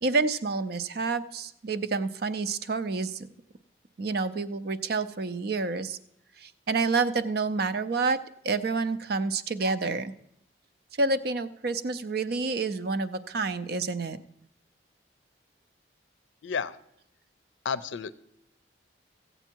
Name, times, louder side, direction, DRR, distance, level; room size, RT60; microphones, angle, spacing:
voice 1, 0.0-3.3 4.0-6.0 6.4-8.2 8.4-10.1 11.0-14.2, right 3 dB, 55° right, 12 dB, 0.5 m, -28 dB
voice 2, 16.4-16.8 17.6-18.2, left 6 dB, 80° left, 17 dB, 0.5 m, -31 dB
15.0 x 8.0 x 4.5 m, 0.76 s
head